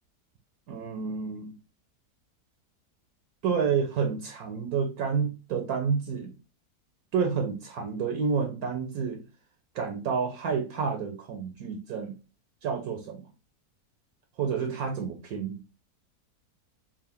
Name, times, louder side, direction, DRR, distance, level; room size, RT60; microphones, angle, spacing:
voice 1, 0.7-1.5 3.4-6.3 7.1-9.2 9.7-12.2 12.6-13.3 14.4-15.6, right 6 dB, 70° right, 5 dB, 1.0 m, -29 dB
3.5 x 2.4 x 3.5 m, 0.31 s
omnidirectional pair, 1.7 m